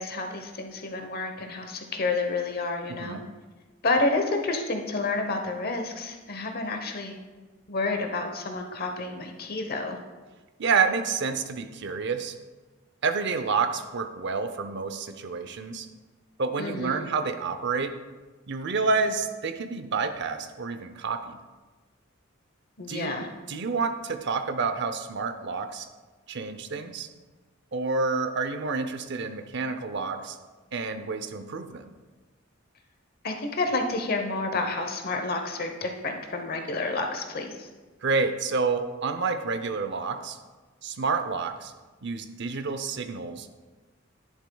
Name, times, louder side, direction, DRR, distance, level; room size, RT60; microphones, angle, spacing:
voice 1, 0.0-3.2 3.8-7.2 7.7-10.0 16.6-17.1 22.8-23.3 33.2-37.7, left 3 dB, 50° left, 4 dB, 0.9 m, -29 dB
voice 2, 2.9-3.3 10.6-12.4 13.0-15.9 16.4-18.0 18.5-21.4 22.9-23.1 23.5-25.9 26.3-27.1 27.7-30.4 30.7-31.9 38.0-40.4 40.8-41.7 42.0-43.5, right 4 dB, 60° right, 8 dB, 0.7 m, -29 dB
11.0 x 10.0 x 2.3 m, 1.3 s
head